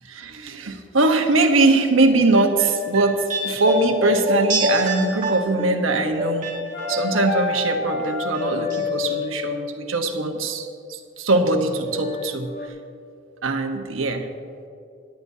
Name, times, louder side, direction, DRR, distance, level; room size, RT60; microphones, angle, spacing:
voice 1, 0.1-6.5 6.9-12.5 13.4-14.3, right 2 dB, 85° right, 4 dB, 1.1 m, -21 dB
sound 1, 2.3-7.6 7.9-8.8 9.1-9.2, equal, 40° right, 1.8 m, -26 dB
sound 2, 6.7-9.6 11.9-12.7, left 5 dB, 50° left, 1.3 m, -29 dB
17.5 x 10.5 x 2.8 m, 2.4 s
head